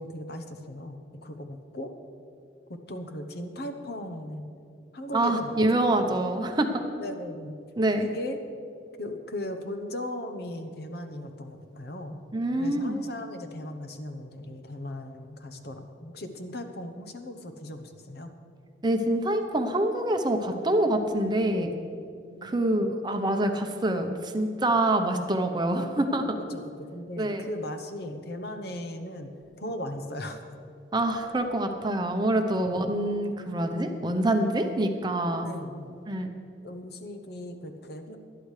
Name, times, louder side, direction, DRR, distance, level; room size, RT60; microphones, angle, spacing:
voice 1, 0.0-1.9 2.7-4.5 4.9-5.7 6.1-6.3 7.0-7.6 7.9-8.4 9.0-12.2 12.5-18.3 22.3-22.8 26.5-30.5 32.8-32.9 35.4-36.0 36.6-38.2, left 1 dB, 55° left, 7 dB, 0.9 m, -38 dB
voice 2, 5.1-6.8 7.8-8.1 12.3-13.0 18.8-21.7 22.4-26.4 27.2-27.5 30.9-35.5 36.1-36.3, right 1 dB, 25° right, 5 dB, 0.8 m, -26 dB
19.5 x 11.5 x 3.3 m, 2.5 s
head